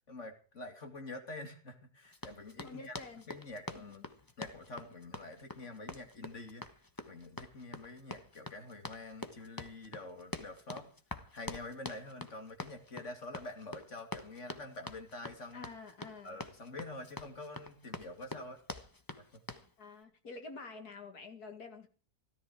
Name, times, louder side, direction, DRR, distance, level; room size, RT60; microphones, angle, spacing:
voice 1, 0.1-3.0 3.3-4.0 4.4-6.6 7.1-10.9 11.3-15.7 16.2-18.6 19.2-19.4, left 2 dB, 50° left, 3.0 m, -46 dB
Run, 2.1-19.7, left 2 dB, 15° left, 1.2 m, -46 dB
voice 2, 2.6-3.2 3.7-4.0 15.5-16.4 19.8-21.9, left 3 dB, 75° left, 2.5 m, -48 dB
17.5 x 13.5 x 4.8 m
omnidirectional pair, 1.7 m